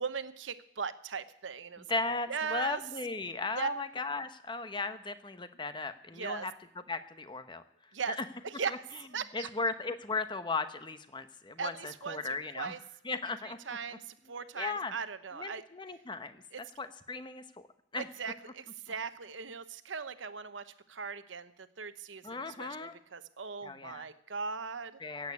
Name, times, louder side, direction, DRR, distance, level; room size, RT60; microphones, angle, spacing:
voice 1, 0.0-2.0 2.3-2.8 3.5-3.8 6.1-6.5 7.9-8.2 8.4-8.8 9.1-9.5 11.6-12.8 13.4-15.6 16.5-16.6 17.9-25.0, right 5 dB, 85° right, 12 dB, 0.9 m, -39 dB
voice 2, 1.9-6.5 6.9-7.6 8.2-8.3 9.3-12.7 13.0-13.6 14.6-14.9 15.3-16.4 16.8-17.7 17.9-18.1 22.2-23.0 23.6-24.1 25.0-25.3, left 3 dB, 25° left, 10 dB, 0.9 m, -36 dB
15.5 x 8.6 x 8.3 m, 0.76 s
head